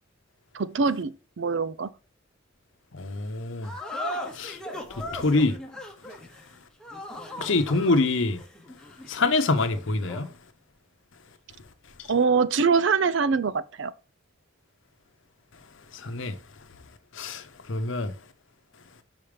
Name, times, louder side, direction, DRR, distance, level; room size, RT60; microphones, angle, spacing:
voice 1, 0.5-1.9 12.1-13.9, right 5 dB, 60° right, 0.5 m, -24 dB
voice 2, 2.9-3.7 4.3-4.6 4.9-5.6 7.4-8.4 9.1-10.3 15.9-16.4 17.1-18.1, left 3 dB, 70° left, 0.8 m, -25 dB
sound 1, 3.6-10.4, left 1 dB, 5° left, 0.9 m, -38 dB
5.6 x 5.1 x 3.3 m
head